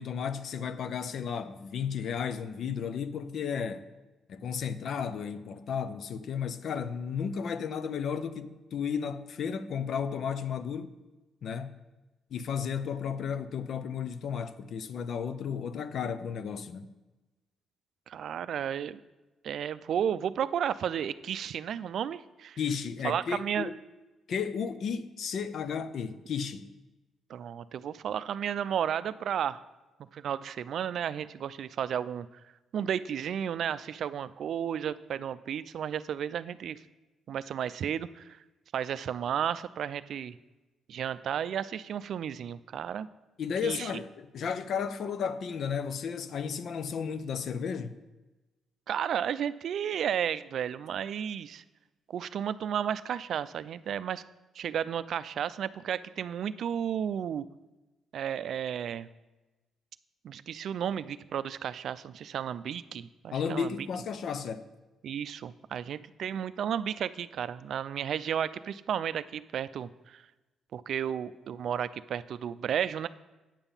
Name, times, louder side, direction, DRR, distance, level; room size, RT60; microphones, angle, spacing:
voice 1, 0.0-3.8 4.3-10.9 11.4-11.8 12.3-16.9 22.6-23.8 24.3-26.7 43.4-48.0 63.3-64.7, left 7 dB, 65° left, 0.6 m, -33 dB
voice 2, 18.1-19.0 19.4-22.6 23.0-23.7 27.3-29.6 30.1-32.3 32.7-36.8 37.3-38.2 38.7-40.4 40.9-43.1 43.6-43.9 48.9-51.6 52.1-54.2 54.6-57.5 58.1-59.1 60.2-63.7 65.0-70.2 70.7-73.1, right 9 dB, 65° right, 0.4 m, -33 dB
9.0 x 7.0 x 5.6 m
cardioid pair, 90°, 0 cm